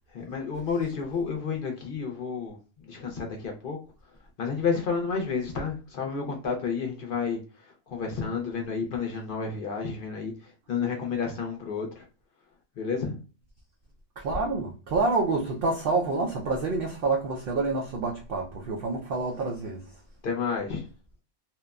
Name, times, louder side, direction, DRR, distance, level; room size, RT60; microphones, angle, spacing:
voice 1, 0.1-3.8 4.4-7.4 7.9-10.3 10.7-12.0 12.8-13.2 20.2-20.8, left 5 dB, 55° left, 0.6 m, -30 dB
voice 2, 14.2-19.9, right 3 dB, 70° right, 0.5 m, -28 dB
2.9 x 2.1 x 2.2 m
omnidirectional pair, 1.4 m